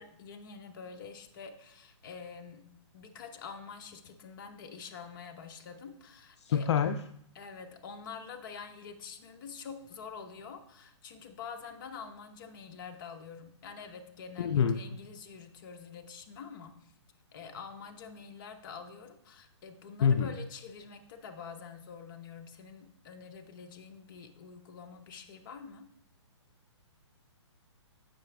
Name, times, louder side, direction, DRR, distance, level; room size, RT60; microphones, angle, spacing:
voice 1, 0.0-2.6 2.9-6.7 7.3-16.9 17.3-25.9, left 6 dB, 45° left, 6 dB, 0.8 m, -46 dB
voice 2, 6.4-7.0 14.4-14.8 20.0-20.3, left 7 dB, 65° left, 9 dB, 0.4 m, -26 dB
7.4 x 5.7 x 3.3 m, 0.71 s
hypercardioid pair, 155°, 15 cm